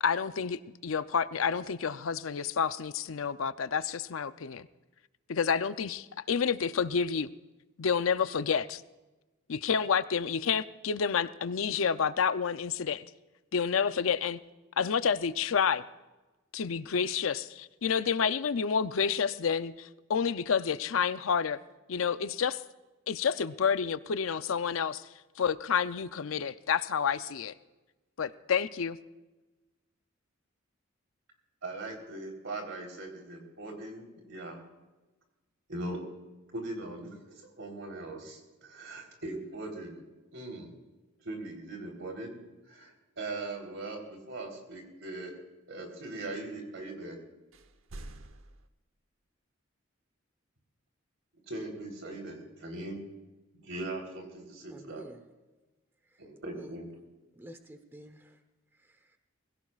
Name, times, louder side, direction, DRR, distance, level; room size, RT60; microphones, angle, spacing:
voice 1, 0.0-4.7 5.3-7.3 7.8-8.8 9.5-13.0 13.5-14.4 14.8-15.8 16.5-21.6 21.9-22.6 23.1-25.1 25.4-27.5 28.2-29.0, left 6 dB, 80° left, 13 dB, 0.6 m, -29 dB
voice 2, 31.6-34.6 35.7-36.0 36.5-40.0 40.3-40.7 41.2-42.4 42.6-45.3 45.7-47.2 51.5-53.0 53.5-55.0 56.2-56.9, right 2 dB, 70° right, 2 dB, 3.7 m, -40 dB
sound 1, 47.5-48.7, right 1 dB, 85° right, 0.9 m, -46 dB
voice 3, 54.7-55.2 56.1-56.2 56.6-56.8 57.3-58.4 58.8-59.2, equal, 10° right, 7 dB, 0.9 m, -50 dB
21.0 x 16.5 x 2.4 m, 1.1 s
head